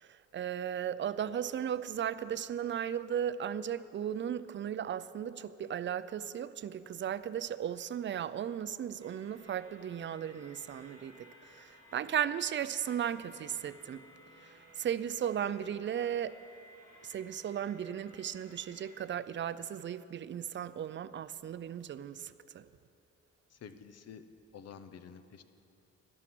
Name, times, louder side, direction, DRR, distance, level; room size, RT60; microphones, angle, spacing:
voice 1, 0.0-14.0 14.4-16.4 17.0-22.7, right 9 dB, 40° right, 15 dB, 0.4 m, -36 dB
sound 1, 9.0-19.0, equal, 85° left, 3.2 m, -58 dB
voice 2, 23.6-24.2 24.5-25.4, left 7 dB, 55° left, 11 dB, 0.8 m, -49 dB
12.0 x 11.0 x 6.1 m, 2.7 s
cardioid pair, 90°, 30 cm